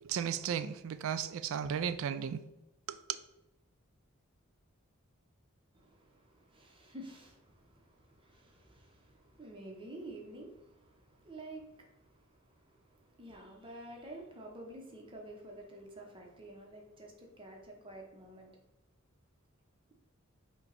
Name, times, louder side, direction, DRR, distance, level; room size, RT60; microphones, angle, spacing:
voice 1, 0.0-2.4 2.9-3.0, right 8 dB, 65° right, 12 dB, 0.3 m, -35 dB
voice 2, 5.7-18.5, right 1 dB, 25° right, 0 dB, 0.8 m, -50 dB
5.5 x 2.3 x 4.0 m, 0.94 s
head